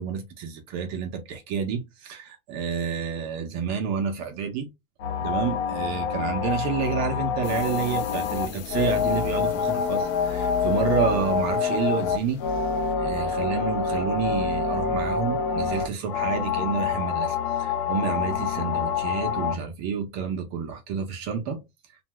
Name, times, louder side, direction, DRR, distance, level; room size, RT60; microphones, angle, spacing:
voice 1, 0.0-4.7 5.2-12.4 13.0-21.6, right 6 dB, 40° right, 0.7 m, -29 dB
sound 1, 5.0-19.5, left 6 dB, 85° left, 0.8 m, -26 dB
sound 2, 7.4-12.9, left 10 dB, 40° left, 0.4 m, -42 dB
2.7 x 2.3 x 3.0 m
supercardioid pair, 150°, 43 cm